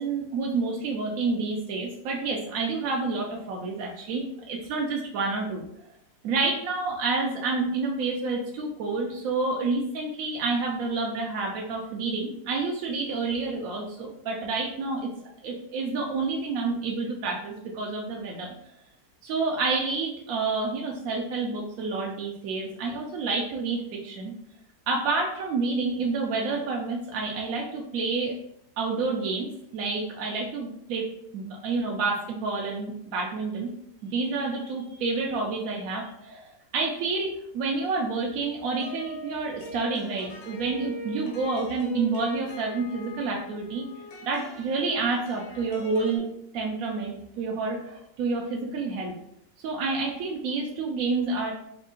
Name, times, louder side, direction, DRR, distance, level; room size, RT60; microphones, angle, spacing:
voice 1, 0.0-5.7 6.2-15.1 15.4-18.5 19.2-24.3 24.9-28.4 28.8-31.1 31.3-33.7 34.0-43.9 44.2-46.2 46.5-49.1 49.6-51.5, right 3 dB, 70° right, -1 dB, 0.8 m, -29 dB
sound 1, 38.8-46.2, left 2 dB, 75° left, 1.4 m, -42 dB
3.5 x 2.4 x 3.7 m, 0.75 s
omnidirectional pair, 1.9 m